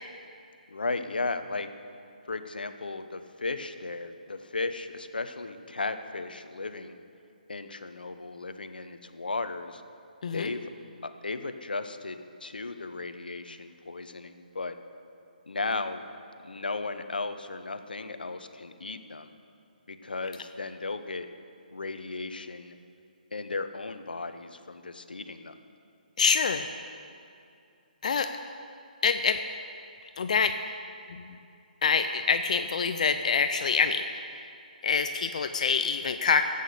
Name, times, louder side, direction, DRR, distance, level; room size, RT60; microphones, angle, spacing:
voice 1, 0.7-1.7 2.3-7.0 7.5-9.8 10.3-10.6 11.0-14.7 15.5-16.0 16.4-19.3 19.9-21.3 21.7-22.8 23.3-25.6, left 3 dB, 75° left, 9 dB, 0.9 m, -35 dB
voice 2, 26.2-26.7 28.0-28.3 29.0-29.4 30.2-30.5 31.1-31.3 31.8-34.0 34.3-34.5 34.8-36.4, left 5 dB, 50° left, 8 dB, 0.5 m, -25 dB
13.0 x 8.4 x 6.8 m, 2.5 s
figure-of-eight pair, 140°, 5 cm